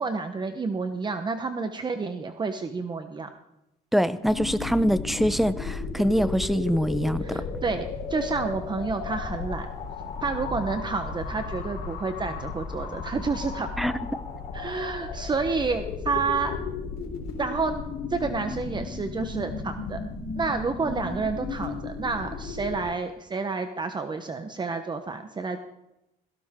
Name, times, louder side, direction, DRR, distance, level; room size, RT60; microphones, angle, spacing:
voice 1, 0.0-3.3 7.2-9.7 10.2-13.7 14.5-16.6 17.4-17.7 18.1-20.0 20.4-25.6, right 4 dB, 25° right, 8 dB, 1.1 m, -29 dB
voice 2, 3.9-7.4 13.8-13.9, equal, ahead, 14 dB, 0.8 m, -24 dB
sound 1, 4.3-22.8, left 4 dB, 70° left, 4.0 m, -34 dB
17.0 x 17.0 x 3.8 m, 0.89 s
cardioid pair, 110°, 17 cm